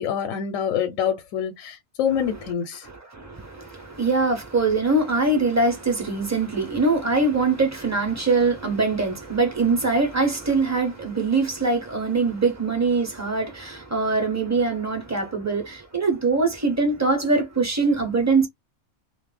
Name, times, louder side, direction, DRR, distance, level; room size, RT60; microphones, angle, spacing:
voice 1, 0.0-2.9, left 8 dB, 75° left, 0.9 m, -26 dB
voice 2, 2.8-18.5, right 3 dB, 20° right, 0.5 m, -23 dB
2.4 x 2.0 x 3.2 m
omnidirectional pair, 1.4 m